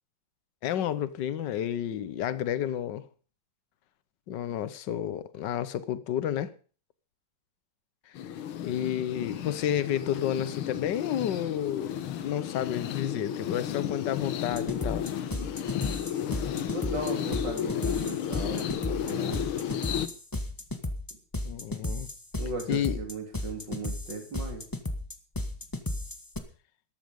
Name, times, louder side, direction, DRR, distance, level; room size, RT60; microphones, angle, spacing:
voice 1, 0.6-3.1 4.3-6.5 8.6-15.1 21.4-22.1 22.7-23.0, left 10 dB, 60° left, 1.5 m, -31 dB
sound 1, 8.2-20.1, left 9 dB, 90° left, 1.9 m, -33 dB
sound 2, 14.5-26.4, left 1 dB, 15° left, 1.0 m, -34 dB
voice 2, 16.7-19.4 22.4-24.6, right 2 dB, 55° right, 4.1 m, -37 dB
13.0 x 13.0 x 5.3 m
omnidirectional pair, 2.3 m